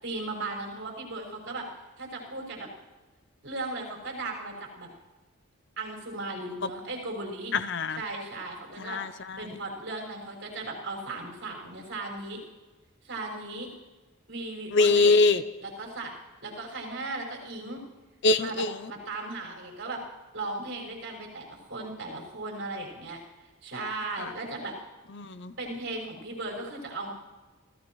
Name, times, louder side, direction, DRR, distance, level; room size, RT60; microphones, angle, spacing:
voice 1, 0.0-1.7 2.0-2.7 3.4-4.9 5.8-7.5 8.0-12.4 13.0-13.7 14.3-15.1 15.6-16.1 16.4-17.8 18.4-20.0 20.3-23.2 23.6-24.7 25.6-27.1, right 2 dB, 55° right, -1 dB, 5.8 m, -37 dB
voice 2, 7.5-8.0 8.8-9.5 14.7-15.4 18.2-18.9 24.2-24.3 25.1-25.5, left 3 dB, 50° left, 13 dB, 0.6 m, -24 dB
28.5 x 16.0 x 3.1 m, 1.2 s
head